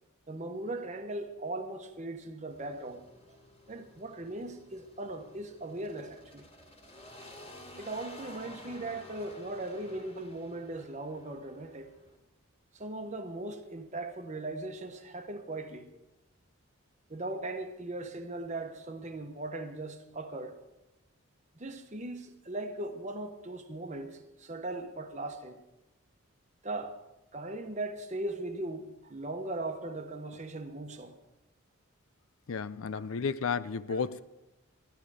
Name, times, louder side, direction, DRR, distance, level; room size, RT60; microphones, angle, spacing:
voice 1, 0.3-3.4 3.7-6.5 7.8-11.9 12.7-15.9 17.1-20.6 21.5-25.6 26.6-27.0 27.3-31.1, right 2 dB, 35° right, 1.1 m, -39 dB
sound 1, 2.5-12.2, left 1 dB, 25° left, 2.1 m, -52 dB
voice 2, 32.5-34.2, left 5 dB, 70° left, 0.5 m, -32 dB
14.0 x 12.0 x 5.0 m
head